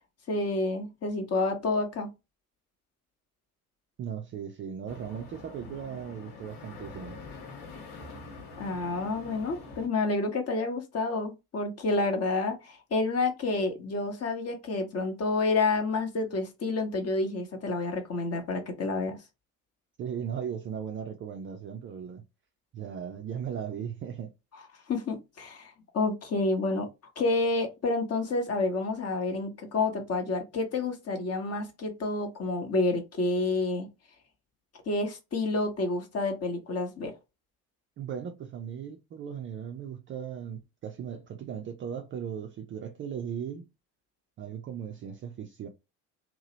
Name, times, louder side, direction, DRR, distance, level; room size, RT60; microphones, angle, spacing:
voice 1, 0.3-2.1 8.6-19.2 24.9-26.9 27.2-33.9 34.9-37.1, left 3 dB, 35° left, 0.9 m, -29 dB
voice 2, 4.0-7.2 20.0-22.2 22.7-24.3 38.0-43.7 44.4-45.7, right 8 dB, 30° right, 0.4 m, -37 dB
sound 1, 4.8-9.9, left 3 dB, 60° left, 1.3 m, -45 dB
2.8 x 2.0 x 2.7 m
hypercardioid pair, 65°, 46 cm